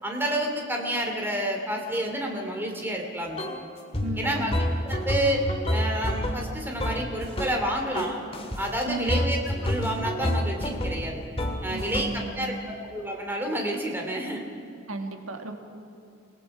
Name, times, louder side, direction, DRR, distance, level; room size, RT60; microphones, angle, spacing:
voice 1, 0.0-3.5 4.2-4.5 4.8-8.2 8.6-11.2 11.6-12.1 12.3-14.4, right 1 dB, 10° right, 2 dB, 2.8 m, -29 dB
sound 1, 3.4-3.6 3.9-7.7 7.9-8.6 9.1-12.3, equal, 30° left, 2.0 m, -29 dB
voice 2, 4.0-4.5 8.8-9.2 11.7-12.7 14.9-15.5, right 2 dB, 80° right, 5 dB, 1.8 m, -35 dB
28.0 x 19.0 x 4.9 m, 2.7 s
head